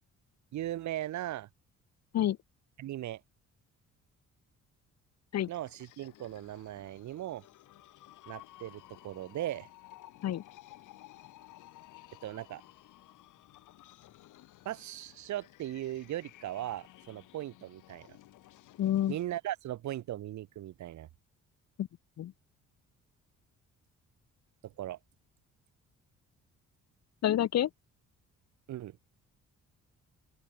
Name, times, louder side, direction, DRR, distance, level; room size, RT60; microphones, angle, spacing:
voice 1, 0.5-1.5 2.8-3.2 5.5-7.4 8.3-9.7 12.2-12.6 14.6-18.1 19.1-21.1 24.6-25.0 28.7-29.0, right 13 dB, 70° right, 1.1 m, -38 dB
sound 1, 5.5-19.2, left 16 dB, 90° left, 3.5 m, -56 dB
voice 2, 18.8-19.2 21.8-21.9 22.2-22.3 27.2-27.7, left 12 dB, 60° left, 0.9 m, -28 dB
open air
cardioid pair, 90°, 30 cm